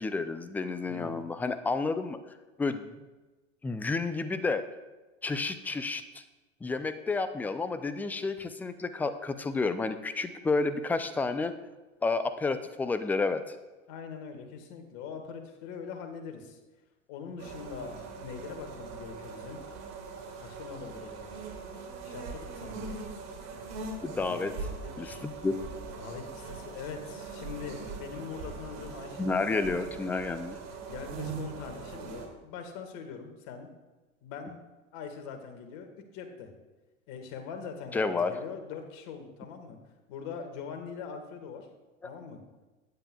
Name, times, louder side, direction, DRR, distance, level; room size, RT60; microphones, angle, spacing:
voice 1, 0.0-2.2 2.6-2.9 3.6-4.6 5.2-6.2 6.6-11.5 12.0-13.6 24.0-24.5 25.0-25.6 29.2-30.6 37.9-38.3, left 3 dB, 5° left, 10 dB, 0.4 m, -30 dB
voice 2, 0.9-1.2 13.9-16.6 17.1-19.6 20.4-21.4 22.0-22.9 24.1-25.2 26.0-29.9 30.9-33.7 34.2-34.6 34.9-36.5 37.1-39.8 40.1-41.7 42.0-42.4, left 6 dB, 50° left, 5 dB, 1.8 m, -42 dB
sound 1, 17.4-32.3, right 4 dB, 40° right, 2.5 m, -41 dB
15.0 x 9.6 x 2.3 m, 1.2 s
figure-of-eight pair, 90°, 38 cm